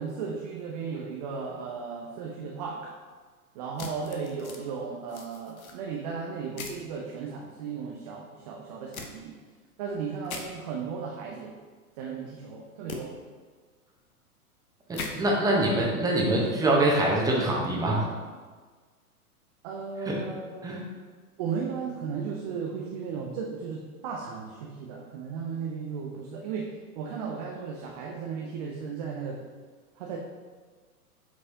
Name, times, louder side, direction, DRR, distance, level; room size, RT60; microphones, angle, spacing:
voice 1, 0.0-3.0 3.6-9.3 9.8-11.6 12.0-13.2 19.6-20.9 21.4-29.4 30.0-30.2, right 5 dB, 25° right, -1 dB, 0.5 m, -35 dB
sound 1, 3.8-4.6 5.1-5.7 6.6-6.8 8.9-9.1 10.3-10.5 12.9-13.0 14.9-15.1, left 5 dB, 65° left, 1.0 m, -39 dB
voice 2, 14.9-18.1 20.1-20.2 20.6-20.8, right 1 dB, 10° right, -3 dB, 1.0 m, -24 dB
7.8 x 4.6 x 2.8 m, 1.5 s
figure-of-eight pair, 105°, 46 cm